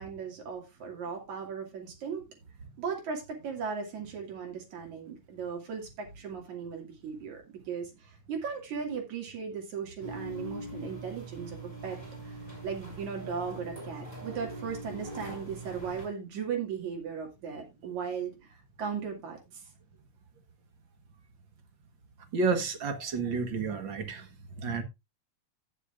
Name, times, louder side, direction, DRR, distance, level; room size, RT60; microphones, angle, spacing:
voice 1, 0.0-2.2 2.8-7.4 7.7-7.9 8.3-11.6 11.8-12.0 12.2-18.3 18.8-19.4, right 6 dB, 75° right, 3.8 m, -37 dB
sound 1, 10.0-16.1, right 1 dB, 10° right, 5.5 m, -42 dB
voice 2, 22.3-24.3 24.6-24.8, right 4 dB, 50° right, 1.8 m, -30 dB
17.5 x 6.8 x 2.5 m
omnidirectional pair, 3.4 m